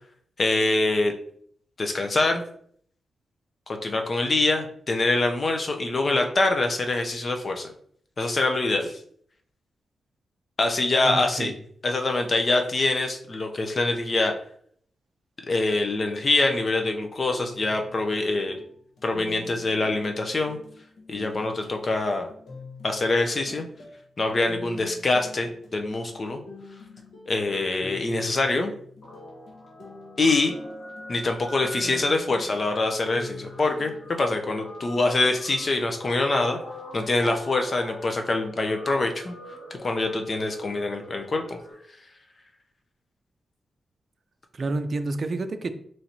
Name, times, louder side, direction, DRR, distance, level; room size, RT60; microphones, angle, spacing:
voice 1, 0.4-1.1 1.8-2.4 3.7-7.7 8.2-9.0 10.6-11.5 11.8-14.3 15.5-18.6 19.0-20.6 21.1-22.3 22.8-23.7 24.2-26.4 27.3-28.7 30.2-30.5 31.1-36.6 36.9-39.3 39.8-41.6, left 2 dB, 45° left, 4 dB, 0.6 m, -24 dB
voice 2, 11.0-11.5 44.5-45.7, right 2 dB, 50° right, 9 dB, 0.4 m, -29 dB
sound 1, 17.3-35.2, left 3 dB, 85° left, 1.1 m, -46 dB
Guitar, 29.0-41.7, left 1 dB, 60° left, 1.6 m, -42 dB
4.3 x 3.1 x 2.7 m, 0.62 s
cardioid pair, 85°, 0 cm